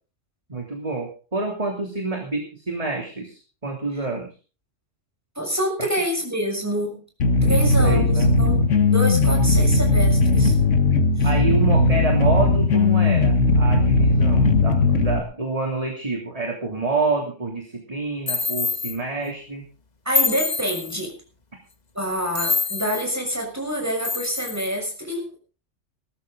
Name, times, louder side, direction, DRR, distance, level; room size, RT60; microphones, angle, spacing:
voice 1, 0.5-4.3 5.8-5.9 7.6-8.3 11.2-19.7, right 3 dB, 30° right, 2 dB, 3.2 m, -28 dB
voice 2, 5.3-7.0 7.4-8.6 8.9-10.6 11.2-11.3 20.0-21.1 21.9-25.4, equal, 10° right, 1 dB, 6.6 m, -27 dB
sound 1, 7.2-15.2, left 3 dB, 75° left, 1.9 m, -18 dB
sound 2, 18.3-19.0 20.1-21.0 22.3-23.1 24.0-24.7, left 4 dB, 35° left, 1.3 m, -25 dB
20.0 x 13.5 x 3.9 m, 0.36 s
omnidirectional pair, 1.3 m